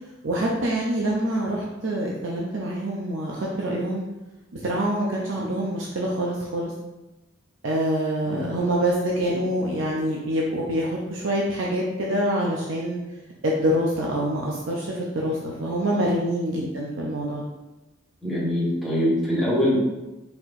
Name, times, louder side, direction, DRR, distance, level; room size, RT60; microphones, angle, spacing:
voice 1, 0.2-4.0 4.6-6.7 7.6-13.0 13.4-17.4, right 1 dB, 75° right, -3 dB, 0.7 m, -25 dB
voice 2, 18.2-19.8, equal, ahead, -8 dB, 1.6 m, -24 dB
4.6 x 4.4 x 2.6 m, 1.0 s
head